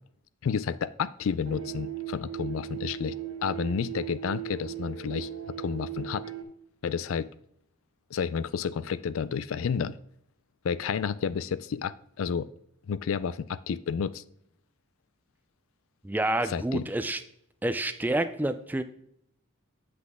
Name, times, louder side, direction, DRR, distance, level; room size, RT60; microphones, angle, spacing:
voice 1, 0.4-3.2 3.4-6.3 6.8-7.3 8.1-10.0 10.6-12.5 12.9-14.2 16.5-16.9, left 6 dB, 70° left, 0.4 m, -31 dB
sound 1, 1.5-6.4, right 11 dB, 65° right, 0.9 m, -38 dB
voice 2, 16.0-17.2 17.6-18.8, right 1 dB, 10° right, 0.4 m, -28 dB
7.7 x 6.0 x 3.5 m
head